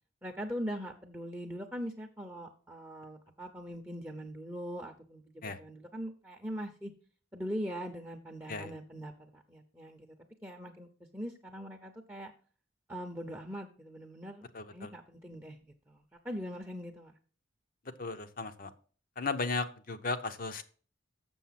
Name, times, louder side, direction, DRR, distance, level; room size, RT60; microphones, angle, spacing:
voice 1, 0.2-5.2 5.6-6.9 7.3-10.1 10.4-12.3 12.9-14.4 14.7-17.1, equal, 10° right, 4 dB, 0.7 m, -41 dB
voice 2, 14.5-14.9 18.0-18.7 19.2-20.6, left 3 dB, 45° left, 9 dB, 0.7 m, -35 dB
7.0 x 6.9 x 5.8 m, 0.41 s
head